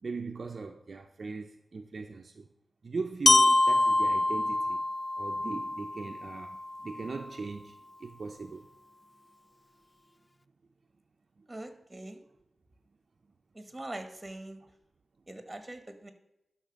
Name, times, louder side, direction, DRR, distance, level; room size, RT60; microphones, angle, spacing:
voice 1, 0.0-2.5 2.8-4.8 5.2-8.7 11.4-11.5, right 4 dB, 55° right, 0.5 m, -39 dB
Glockenspiel, 3.3-7.2, left 2 dB, 30° left, 0.3 m, -26 dB
voice 2, 11.5-12.2 13.5-14.6 15.3-16.1, right 1 dB, 20° right, 1.3 m, -42 dB
11.5 x 4.3 x 5.2 m
wide cardioid pair, 85°, 0 cm